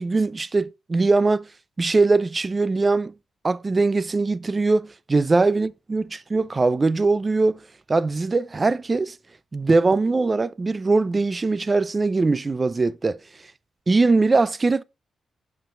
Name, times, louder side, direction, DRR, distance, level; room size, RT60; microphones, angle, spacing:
voice 1, 0.0-1.5 1.8-3.1 3.4-7.6 7.9-9.2 9.5-13.2 13.9-14.8, right 3 dB, 25° right, 0.3 m, -21 dB
9.0 x 5.8 x 2.2 m
wide cardioid pair, 145°, 0 cm